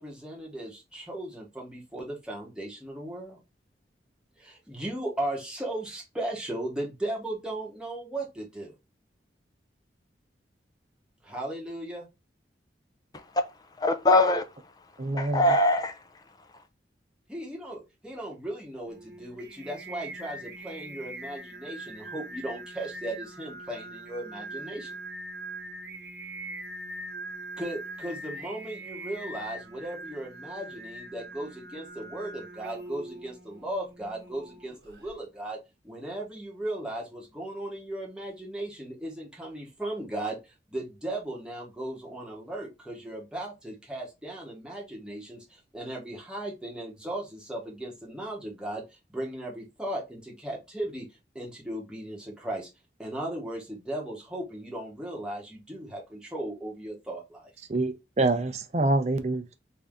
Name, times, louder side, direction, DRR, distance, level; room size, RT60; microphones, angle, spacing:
voice 1, 0.0-3.4 4.4-8.7 11.2-12.1 17.3-25.0 27.6-35.6 35.8-48.8 49.1-51.1 51.3-52.7 53.0-57.4, right 1 dB, 5° right, 1.0 m, -37 dB
voice 2, 13.8-14.7 15.0-16.2, left 2 dB, 20° left, 0.4 m, -23 dB
voice 3, 15.0-15.4 57.7-59.6, right 2 dB, 35° right, 0.5 m, -26 dB
Singing, 18.9-35.1, right 1 dB, 60° right, 0.9 m, -42 dB
3.4 x 2.7 x 3.5 m
head